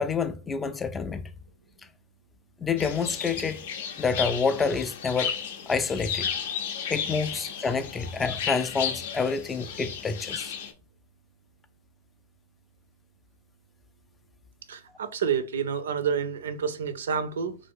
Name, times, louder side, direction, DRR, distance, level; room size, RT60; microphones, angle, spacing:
voice 1, 0.0-1.3 2.6-3.7 4.0-5.4 5.7-6.3 6.9-10.5, left 5 dB, 15° left, 0.4 m, -28 dB
sound 1, 2.8-10.7, left 8 dB, 70° left, 0.5 m, -34 dB
voice 2, 14.7-17.6, right 7 dB, 80° right, 0.4 m, -29 dB
2.9 x 2.6 x 3.5 m
hypercardioid pair, 110°, 0 cm